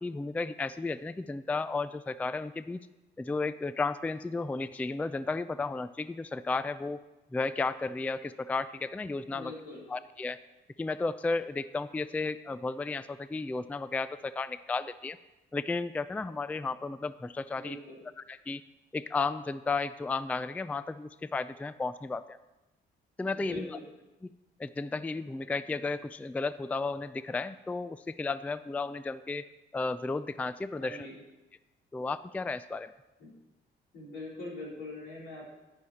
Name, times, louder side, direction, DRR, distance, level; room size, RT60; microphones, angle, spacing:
voice 1, 0.0-2.8 3.2-7.0 7.3-9.5 9.9-10.4 10.8-15.2 15.5-17.8 18.3-18.6 18.9-22.4 23.2-23.8 24.2-24.3 24.6-29.4 29.7-31.1 31.9-32.9, left 3 dB, 5° left, 14 dB, 0.3 m, -33 dB
voice 2, 9.2-9.9 17.5-18.0 23.2-23.8 30.8-31.1 33.2-33.3 33.9-35.5, left 2 dB, 85° left, -4 dB, 3.9 m, -43 dB
10.5 x 9.5 x 4.3 m, 1.0 s
cardioid pair, 90°, 20 cm